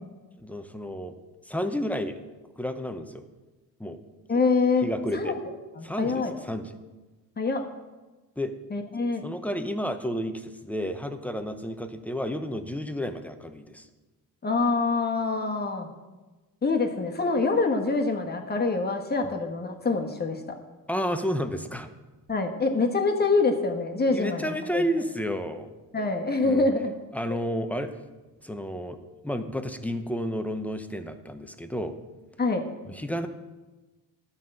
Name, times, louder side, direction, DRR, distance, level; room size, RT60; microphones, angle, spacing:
voice 1, 0.4-1.1 1.5-2.2 2.6-3.2 3.8-4.0 4.8-5.3 5.8-6.7 8.4-8.5 9.2-13.9 20.9-21.9 24.1-25.7 26.4-26.7 27.1-28.0 28.4-32.0 32.9-33.3, equal, 5° left, 8 dB, 0.7 m, -31 dB
voice 2, 4.3-4.9 5.1-5.3 5.8-6.3 7.4-7.6 8.7-9.2 14.4-15.9 16.6-20.4 22.3-24.8 25.9-26.9 32.4-32.6, left 3 dB, 25° left, 3 dB, 1.4 m, -25 dB
12.5 x 5.6 x 7.7 m, 1.2 s
cardioid pair, 135°, 38 cm